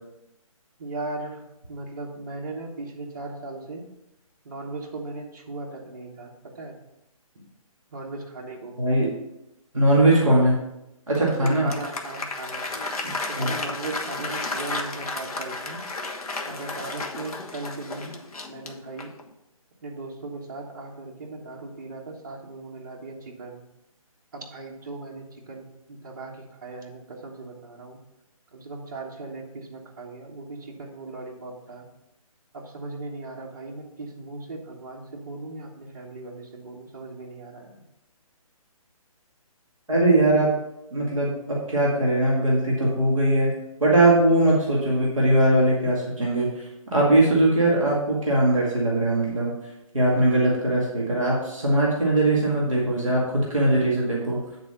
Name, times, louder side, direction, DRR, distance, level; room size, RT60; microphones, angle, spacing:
voice 1, 0.8-3.8 4.4-6.8 7.3-7.5 7.9-8.8 11.1-12.7 13.3-15.8 16.5-18.2 18.5-19.1 19.8-23.6 24.3-28.0 28.5-31.9 32.5-37.9, right 3 dB, 30° right, -3 dB, 1.3 m, -38 dB
voice 2, 8.8-9.1 9.7-10.6 11.1-11.7 13.0-13.5 39.9-40.5 40.9-43.5 43.8-46.6 46.9-49.5 49.9-54.4, right 1 dB, ahead, -23 dB, 0.4 m, -20 dB
Applause, 11.1-19.3, left 3 dB, 85° left, 1.2 m, -33 dB
8.8 x 3.9 x 5.7 m, 0.90 s
hypercardioid pair, 175°, 18 cm